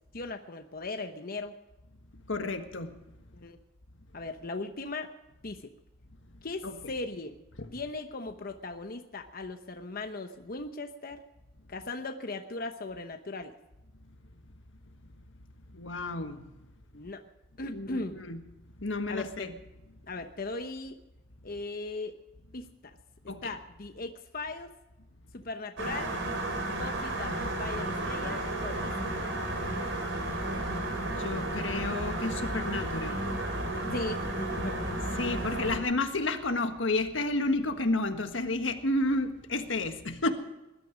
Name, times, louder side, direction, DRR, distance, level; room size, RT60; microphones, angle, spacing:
voice 1, 0.1-1.5 3.3-3.6 4.1-5.1 5.4-5.7 6.4-7.4 7.7-11.2 11.7-13.5 16.9-17.2 17.6-18.2 19.1-19.5 20.1-21.0 21.4-22.1 22.5-22.9 23.2-24.7 25.3-26.2 26.7-29.3 33.9-34.8 35.4-35.5, left 3 dB, 50° left, 6 dB, 1.0 m, -38 dB
voice 2, 2.3-2.9 6.6-6.7 7.6-7.7 15.7-16.4 17.7-18.4 18.8-19.5 23.3-23.5 31.0-33.3 35.2-40.3, left 2 dB, 85° left, 7 dB, 1.5 m, -31 dB
sound 1, 25.8-35.8, right 1 dB, 85° right, 3.8 m, -33 dB
20.0 x 12.0 x 5.1 m, 0.99 s
head